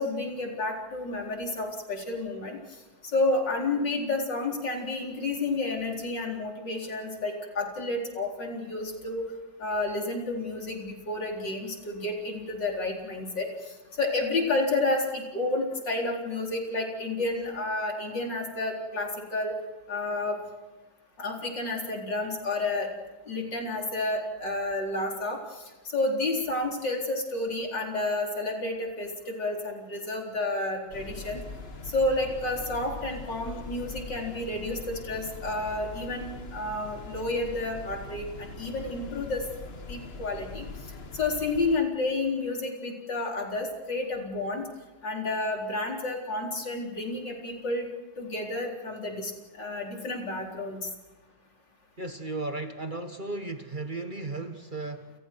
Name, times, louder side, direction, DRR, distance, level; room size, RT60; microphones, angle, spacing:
voice 1, 0.0-2.6 3.0-9.2 9.6-19.5 19.9-20.4 21.2-22.9 23.3-31.4 31.8-39.4 39.9-40.6 41.1-44.7 45.0-47.9 48.2-50.9, left 2 dB, 80° left, 0 dB, 4.8 m, -30 dB
sound 1, 30.9-41.8, left 3 dB, 35° left, 1.8 m, -42 dB
voice 2, 52.0-55.1, right 2 dB, 30° right, 7 dB, 1.3 m, -35 dB
29.5 x 29.0 x 4.7 m, 1.2 s
omnidirectional pair, 1.9 m